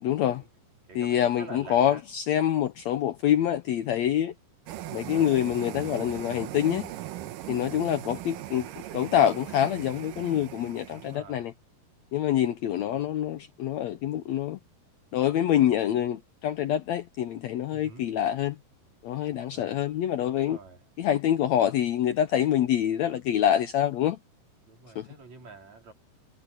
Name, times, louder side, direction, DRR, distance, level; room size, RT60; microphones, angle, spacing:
voice 1, 0.0-0.4 1.0-4.3 4.9-6.9 7.5-11.5 12.1-14.6 15.1-18.6 19.0-20.6 21.0-24.2 25.0-25.1, left 11 dB, 70° left, 1.7 m, -26 dB
voice 2, 0.9-2.0 7.3-7.6 10.9-11.4 17.7-18.1 19.5-19.8 20.2-20.8 24.7-25.9, right 4 dB, 55° right, 6.0 m, -47 dB
sound 1, 4.7-11.2, right 14 dB, 80° right, 2.6 m, -39 dB
omnidirectional pair, 3.9 m